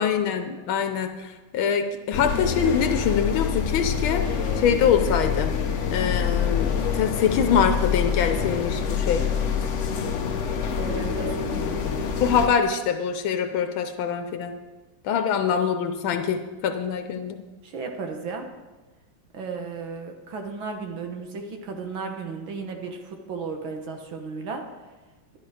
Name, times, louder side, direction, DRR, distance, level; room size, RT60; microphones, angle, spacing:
voice 1, 0.0-4.3 4.6-5.5 5.9-9.2 12.2-14.5 15.0-17.4, left 7 dB, 80° left, 7 dB, 1.6 m, -24 dB
sound 1, 2.1-12.5, left 7 dB, 60° left, 0.8 m, -26 dB
voice 2, 10.8-11.8 17.6-18.5 19.3-24.6, right 4 dB, 75° right, 4 dB, 2.1 m, -34 dB
12.5 x 10.5 x 4.9 m, 1.2 s
omnidirectional pair, 2.2 m